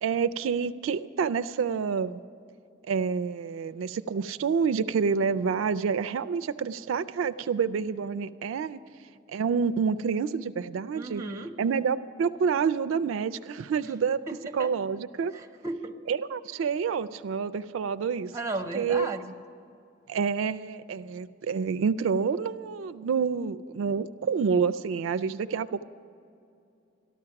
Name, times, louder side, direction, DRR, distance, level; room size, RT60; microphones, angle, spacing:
voice 1, 0.0-2.2 2.9-8.8 9.3-11.2 11.6-14.2 14.5-15.3 16.1-18.3 18.7-19.1 20.1-25.8, right 6 dB, 85° right, 13 dB, 0.3 m, -28 dB
voice 2, 10.9-11.6 13.8-13.9 14.3-14.7 15.3-15.9 18.3-19.3, right 2 dB, 15° right, 5 dB, 0.6 m, -35 dB
13.0 x 12.0 x 5.8 m, 2.6 s
head